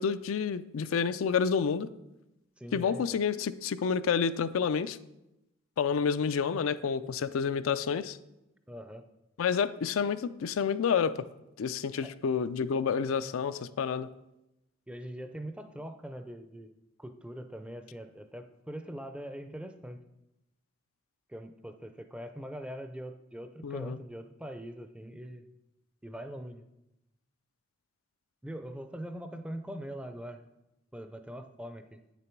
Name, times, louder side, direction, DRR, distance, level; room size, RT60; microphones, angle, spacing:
voice 1, 0.0-1.9 2.7-5.0 5.8-8.2 9.4-11.1 11.6-14.1 23.6-24.0, left 6 dB, 80° left, 13 dB, 0.4 m, -29 dB
voice 2, 2.6-3.2 8.7-9.1 12.0-12.1 14.9-20.0 21.3-25.5 26.0-26.6 28.4-30.4 30.9-32.0, equal, 5° right, 8 dB, 0.4 m, -42 dB
8.8 x 6.9 x 4.5 m, 0.92 s
head